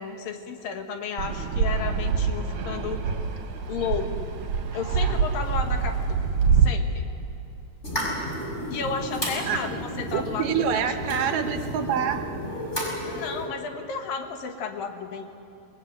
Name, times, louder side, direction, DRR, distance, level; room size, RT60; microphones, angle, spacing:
voice 1, 0.0-3.0 3.7-4.4 4.7-6.2 6.6-7.0 8.7-10.8 13.0-15.2, left 6 dB, 70° left, 5 dB, 3.1 m, -33 dB
Fixed-wing aircraft airplane, 1.2-6.7, right 6 dB, 55° right, 2.8 m, -25 dB
sound 1, 7.8-13.5, equal, 15° left, 5.2 m, -32 dB
voice 2, 10.1-12.3, right 8 dB, 70° right, 7 dB, 2.3 m, -26 dB
27.5 x 19.0 x 8.1 m, 2.9 s
omnidirectional pair, 4.4 m